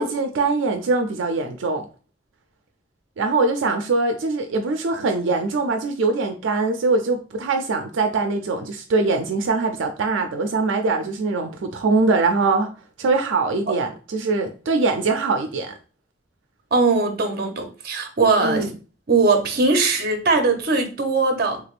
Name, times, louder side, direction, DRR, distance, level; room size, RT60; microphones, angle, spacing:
voice 1, 0.0-1.9 3.2-12.7 13.0-15.7 18.4-18.7, right 3 dB, 90° right, 0.4 m, -22 dB
voice 2, 16.7-18.6 19.1-21.6, right 3 dB, 55° right, 0.7 m, -20 dB
3.4 x 3.3 x 2.4 m
head